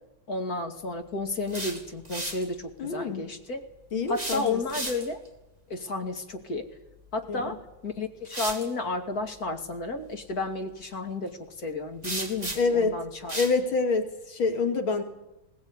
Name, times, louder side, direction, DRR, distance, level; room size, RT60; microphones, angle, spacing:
voice 1, 0.3-3.6 4.1-5.2 5.7-6.7 7.1-7.6 7.8-13.4, left 3 dB, 50° left, 5 dB, 3.0 m, -32 dB
sound 1, 1.3-2.5 4.1-5.3 7.3-7.5 8.2-8.7 12.0-12.8 13.3-13.6, right 2 dB, 20° right, 3.2 m, -35 dB
voice 2, 2.8-3.3 3.9-4.6 7.3-7.5 12.5-13.0 13.3-15.0, left 4 dB, 85° left, 5 dB, 3.4 m, -26 dB
22.0 x 18.5 x 9.8 m, 0.91 s
omnidirectional pair, 2.2 m